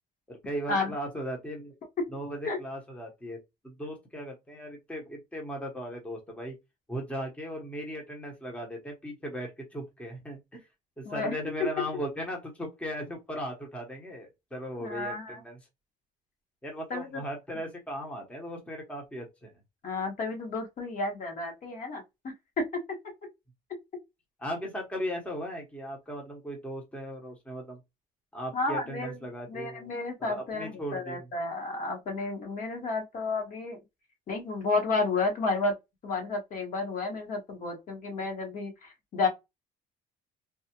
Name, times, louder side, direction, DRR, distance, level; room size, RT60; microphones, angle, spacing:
voice 1, 0.3-1.8 2.1-3.4 3.6-6.6 6.9-10.7 11.0-15.6 16.6-19.5 24.4-27.8 28.3-29.9 30.3-31.3, equal, 5° left, 1.0 m, -37 dB
voice 2, 11.0-11.4 14.8-15.4 16.9-17.2 19.8-22.6 28.5-29.2 29.5-33.8 34.3-35.7 36.0-39.3, left 3 dB, 50° left, 1.5 m, -31 dB
3.3 x 2.4 x 2.9 m
cardioid pair, 110°, 17 cm